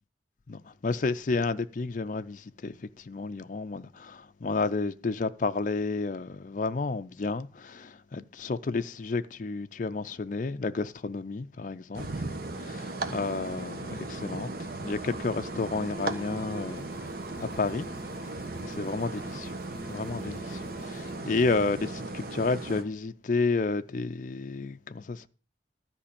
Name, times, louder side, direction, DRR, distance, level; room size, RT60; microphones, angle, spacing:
voice 1, 0.5-12.2 12.5-17.9 18.2-18.3 18.6-19.6 19.9-25.3, left 3 dB, 45° left, 0.5 m, -31 dB
sound 1, 11.9-22.8, right 2 dB, 55° right, 1.3 m, -37 dB
Alarm, 14.3-22.3, right 2 dB, 10° right, 1.7 m, -49 dB
12.5 x 5.1 x 8.7 m
head